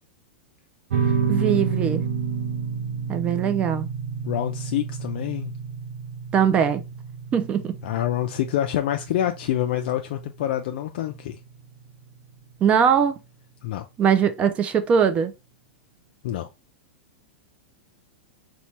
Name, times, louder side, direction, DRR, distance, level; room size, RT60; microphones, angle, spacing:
sound 1, 0.9-11.9, right 6 dB, 80° right, 0.7 m, -30 dB
voice 1, 1.3-2.0 3.1-3.9 6.3-6.8 7.3-7.7 12.6-13.2 14.0-15.3, right 7 dB, 20° right, 0.3 m, -21 dB
voice 2, 4.2-5.5 7.8-11.4 13.6-13.8 16.2-16.5, left 12 dB, 60° left, 0.3 m, -26 dB
4.1 x 2.2 x 2.8 m
supercardioid pair, 155°, 6 cm